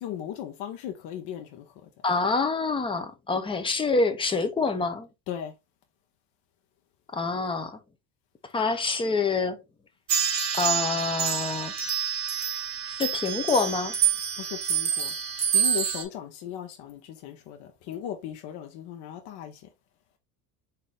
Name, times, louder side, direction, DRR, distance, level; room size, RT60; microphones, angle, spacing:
voice 1, 0.0-1.9 5.3-5.5 14.4-15.1 15.5-19.6, left 10 dB, 65° left, 0.9 m, -37 dB
voice 2, 2.0-5.1 7.1-7.8 8.5-9.6 10.5-11.7 12.9-13.9, left 4 dB, 10° left, 0.5 m, -26 dB
sound 1, 10.1-16.0, right 8 dB, 35° right, 1.6 m, -27 dB
4.2 x 2.7 x 3.4 m
cardioid pair, 130°, 45 cm